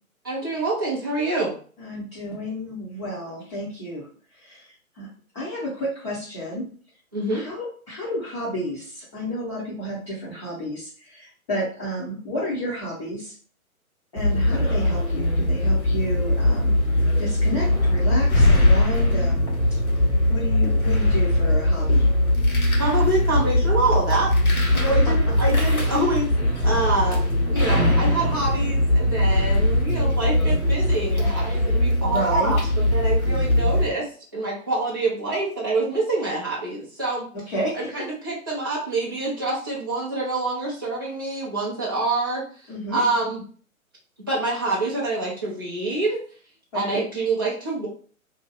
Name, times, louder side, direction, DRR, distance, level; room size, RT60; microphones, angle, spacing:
voice 1, 0.2-1.5 7.1-7.4 22.8-24.3 24.7-26.3 26.6-27.2 27.5-37.3 37.7-43.4 44.3-46.2 46.7-47.9, right 2 dB, 15° right, -7 dB, 0.4 m, -26 dB
voice 2, 1.8-4.1 4.3-4.7 4.9-5.1 5.3-6.7 7.3-13.3 14.1-19.5 20.3-22.1 24.7-24.8 32.0-32.5 37.3-37.9 42.7-43.0 46.7-47.0, equal, 20° left, -8 dB, 0.8 m, -31 dB
sound 1, 14.2-33.9, left 1 dB, 75° left, 1.3 m, -20 dB
2.7 x 2.2 x 3.9 m, 0.42 s
figure-of-eight pair, 130°, 43 cm